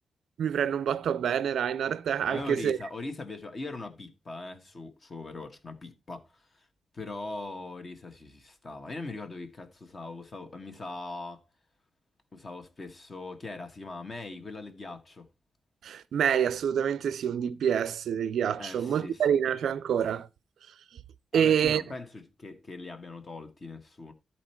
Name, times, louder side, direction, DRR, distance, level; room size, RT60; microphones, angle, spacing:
voice 1, 0.4-2.8 15.8-20.3 21.3-21.8, right 8 dB, 80° right, 0.5 m, -27 dB
voice 2, 2.3-6.7 6.9-11.4 12.3-15.3 18.6-19.4 21.3-24.1, left 2 dB, 30° left, 1.3 m, -41 dB
13.0 x 4.4 x 4.4 m
wide cardioid pair, 140°, 0 cm